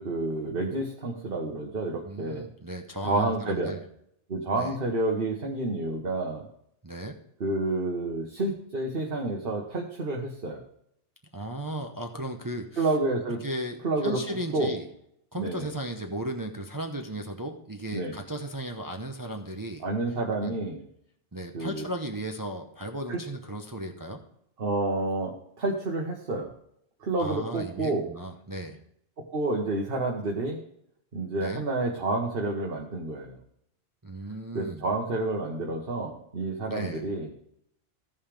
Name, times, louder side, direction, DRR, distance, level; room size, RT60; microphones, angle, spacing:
voice 1, 0.0-2.4 3.0-3.8 4.3-6.5 7.4-10.6 12.8-13.4 13.8-14.2 14.5-14.7 15.4-15.7 17.9-18.2 19.8-20.8 21.5-21.8 23.1-23.2 24.6-26.5 27.0-28.1 29.3-30.6 31.1-33.4 34.5-37.3, right 2 dB, 55° right, 0 dB, 1.5 m, -29 dB
voice 2, 2.0-3.8 4.6-4.8 6.8-7.2 11.3-12.9 13.4-14.9 15.3-19.8 20.4-20.6 21.3-24.2 27.2-28.8 31.4-31.6 34.0-34.8 36.7-37.0, right 1 dB, 20° right, 3 dB, 0.8 m, -36 dB
16.0 x 5.5 x 3.4 m, 0.72 s
omnidirectional pair, 1.2 m